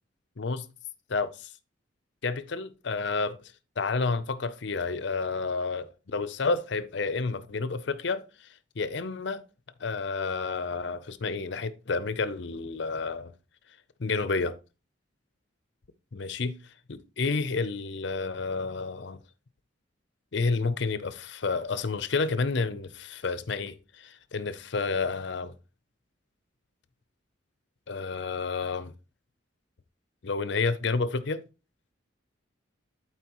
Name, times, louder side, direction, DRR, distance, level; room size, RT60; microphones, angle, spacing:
voice 1, 1.1-1.5 2.2-8.5 8.8-9.4 9.8-13.3 14.0-14.6 16.1-16.6 16.9-19.2 20.3-25.5 27.9-28.9 30.2-31.4, left 4 dB, 65° left, 0.6 m, -30 dB
11.5 x 4.6 x 3.0 m
head